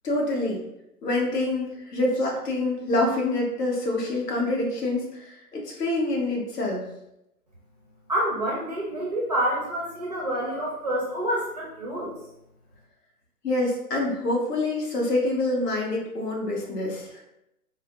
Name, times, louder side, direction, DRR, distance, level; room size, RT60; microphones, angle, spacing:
voice 1, 0.0-0.6 1.0-6.8 13.4-17.2, left 2 dB, 80° left, -2 dB, 1.2 m, -26 dB
voice 2, 8.1-12.1, right 1 dB, 30° right, -5 dB, 0.4 m, -27 dB
4.3 x 2.1 x 2.3 m, 0.84 s
hypercardioid pair, 155°, 47 cm